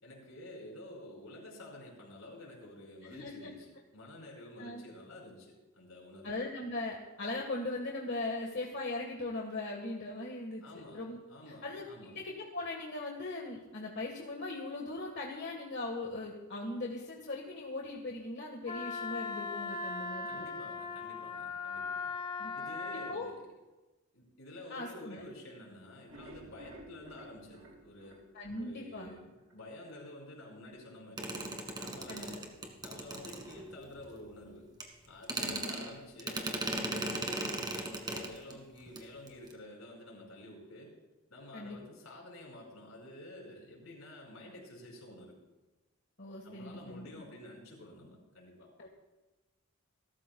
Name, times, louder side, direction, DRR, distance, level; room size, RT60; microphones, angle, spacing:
voice 1, 0.0-6.3 10.6-11.0 11.3-12.2 20.2-22.1 22.5-23.5 24.1-28.2 28.6-32.4 32.8-34.7 35.1-40.9 41.3-45.4 46.4-48.7, left 1 dB, 80° left, -1 dB, 5.1 m, -50 dB
voice 2, 3.0-3.5 4.6-4.8 6.2-10.6 10.9-11.2 11.5-20.4 22.4-22.5 23.1-23.3 24.7-25.2 28.3-29.2 32.1-32.3 35.4-35.6 41.5-41.8 46.2-47.1 48.8-48.9, left 2 dB, 55° left, 0 dB, 1.5 m, -39 dB
Wind instrument woodwind instrument, 18.7-23.2, left 4 dB, 25° left, 0.7 m, -39 dB
sound 1, 25.9-29.1 29.5-29.6 30.0-30.1 30.4-30.5, right 1 dB, 70° right, 2.3 m, -53 dB
sound 2, 31.2-33.9 34.8-34.9 35.2-38.6 38.9-39.0 39.3-39.5, right 2 dB, 20° right, 1.7 m, -37 dB
27.0 x 13.5 x 2.3 m, 1.1 s
head